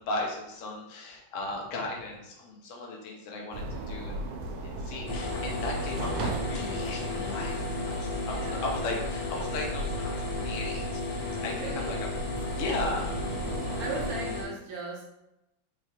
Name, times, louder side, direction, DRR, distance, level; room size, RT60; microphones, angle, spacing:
voice 1, 0.0-12.0 12.3-13.4, left 2 dB, 60° left, -1 dB, 0.8 m, -36 dB
sound 1, 3.5-14.1, right 2 dB, 90° right, 1.4 m, -37 dB
sound 2, 5.1-14.4, left 2 dB, 80° left, 1.7 m, -34 dB
voice 2, 7.8-8.6 11.5-12.0 13.8-15.1, right 3 dB, 60° right, -1 dB, 1.0 m, -38 dB
3.7 x 3.2 x 2.9 m, 0.88 s
omnidirectional pair, 2.2 m